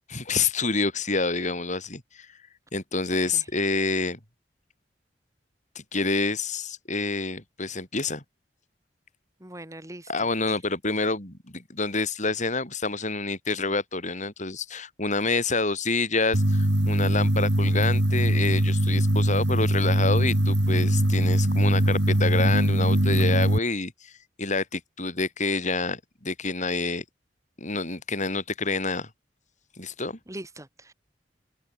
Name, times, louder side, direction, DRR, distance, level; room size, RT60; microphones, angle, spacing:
voice 1, 0.1-2.3 2.7-4.2 5.7-8.2 10.1-24.1 24.4-27.0 27.6-29.1 29.8-30.2, left 3 dB, 45° left, 7.9 m, -28 dB
voice 2, 9.4-10.6 30.3-30.9, right 1 dB, 20° right, 4.6 m, -42 dB
sound 1, 16.3-23.6, right 1 dB, 75° right, 3.1 m, -22 dB
open air
head